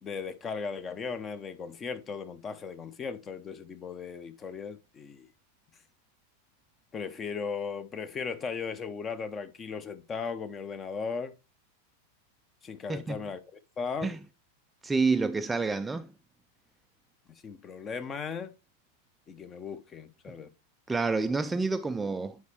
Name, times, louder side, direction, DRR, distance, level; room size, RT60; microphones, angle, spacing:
voice 1, 0.0-5.3 6.9-11.3 12.6-14.1 17.3-18.5 19.3-20.5, left 5 dB, 25° left, 0.8 m, -37 dB
voice 2, 14.8-16.1 20.9-22.4, right 4 dB, 10° right, 0.4 m, -28 dB
9.5 x 4.9 x 3.2 m
figure-of-eight pair, 90°, 0 cm